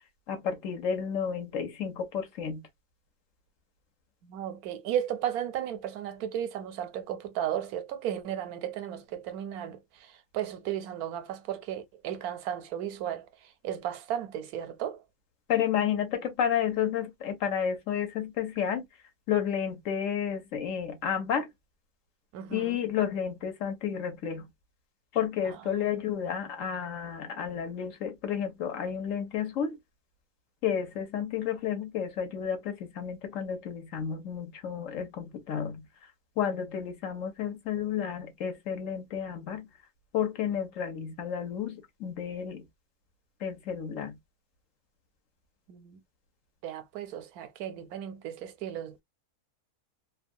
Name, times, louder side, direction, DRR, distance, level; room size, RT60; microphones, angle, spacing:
voice 1, 0.3-2.6 15.5-18.8 19.3-21.5 22.5-24.5 25.1-29.8 30.6-35.9 36.4-39.7 40.1-42.6 43.4-44.2, left 8 dB, 65° left, 1.1 m, -31 dB
voice 2, 4.2-9.8 10.3-13.3 13.6-15.0 22.3-22.8 45.7-46.0 46.6-49.0, right 10 dB, 85° right, 1.1 m, -34 dB
2.7 x 2.3 x 2.5 m
omnidirectional pair, 1.5 m